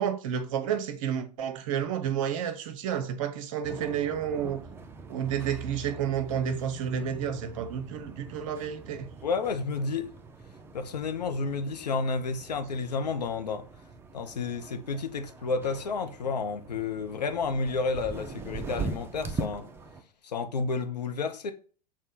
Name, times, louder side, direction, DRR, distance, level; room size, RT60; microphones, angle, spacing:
voice 1, 0.0-4.6 5.1-9.1, right 8 dB, 50° right, 0.7 m, -30 dB
sound 1, 3.6-20.0, right 3 dB, 10° right, 0.4 m, -42 dB
voice 2, 9.2-10.1 10.7-13.7 14.1-19.7 20.2-21.5, left 4 dB, 75° left, 0.5 m, -31 dB
6.1 x 2.1 x 3.7 m
figure-of-eight pair, 90°, 21 cm